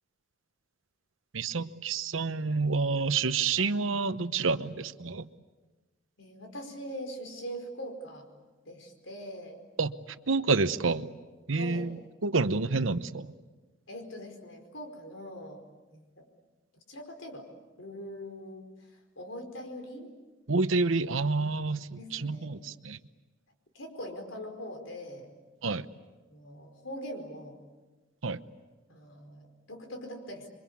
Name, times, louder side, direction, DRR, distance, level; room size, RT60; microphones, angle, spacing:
voice 1, 1.3-5.3 9.8-9.9 10.3-11.1 11.5-11.9 12.2-13.3 20.5-23.0 25.6-25.9 28.2-28.4, right 4 dB, 85° right, 12 dB, 1.0 m, -28 dB
voice 2, 6.2-8.3 8.6-9.6 11.5-11.9 13.9-15.7 15.9-16.3 16.9-17.5 17.8-20.1 21.9-22.6 23.7-25.3 26.3-27.6 28.9-30.5, equal, 70° left, 4 dB, 4.8 m, -42 dB
27.5 x 24.0 x 8.6 m, 1.2 s
head